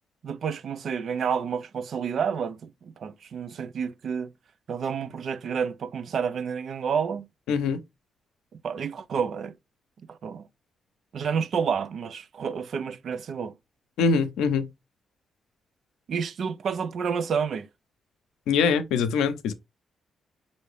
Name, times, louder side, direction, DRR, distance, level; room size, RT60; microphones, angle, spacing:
voice 1, 0.2-4.3 4.7-7.3 8.6-9.5 10.1-10.5 11.1-13.5 16.1-17.7, right 6 dB, 65° right, 0.5 m, -29 dB
voice 2, 7.5-7.8 14.0-14.7 18.5-19.5, left 5 dB, 85° left, 0.5 m, -23 dB
5.5 x 2.6 x 3.2 m
supercardioid pair, 55°, 0 cm